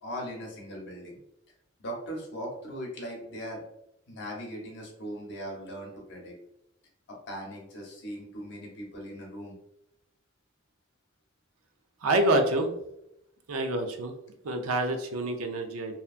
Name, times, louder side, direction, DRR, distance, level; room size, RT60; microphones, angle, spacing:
voice 1, 0.0-1.2 1.8-3.6 4.1-6.3 7.3-9.6, equal, 55° left, -1 dB, 0.8 m, -39 dB
voice 2, 12.0-12.7 13.5-14.1 14.4-16.0, right 1 dB, 80° right, 5 dB, 0.5 m, -27 dB
2.7 x 2.3 x 2.4 m, 0.80 s
head